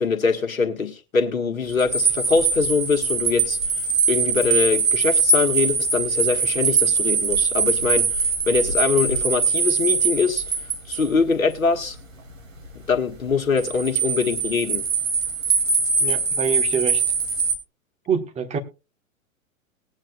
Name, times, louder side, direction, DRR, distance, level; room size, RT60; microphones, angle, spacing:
voice 1, 0.0-3.6 4.1-10.4 10.9-12.0 12.9-14.8, left 4 dB, 80° left, 1.6 m, -23 dB
sound 1, 1.7-11.1 13.6-17.6, right 4 dB, 70° right, 2.4 m, -22 dB
voice 2, 16.0-17.0 18.1-18.6, right 6 dB, 15° right, 1.3 m, -25 dB
19.5 x 8.9 x 2.2 m
figure-of-eight pair, 105°, 41 cm